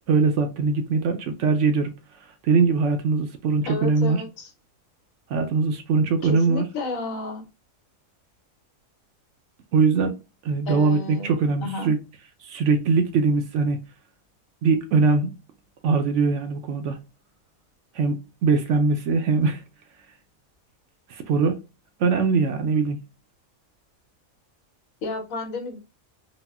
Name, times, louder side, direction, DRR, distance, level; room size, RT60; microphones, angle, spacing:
voice 1, 0.1-1.9 2.4-4.2 5.3-6.7 9.7-10.1 10.4-12.0 12.4-13.8 14.6-15.3 15.8-17.0 17.9-19.6 21.1-21.6 22.0-23.0, right 4 dB, 65° right, 0.8 m, -21 dB
voice 2, 3.6-4.5 6.2-7.4 10.6-11.3 11.6-11.9 25.0-25.8, left 2 dB, 75° left, 1.3 m, -31 dB
4.0 x 2.1 x 2.3 m
omnidirectional pair, 1.5 m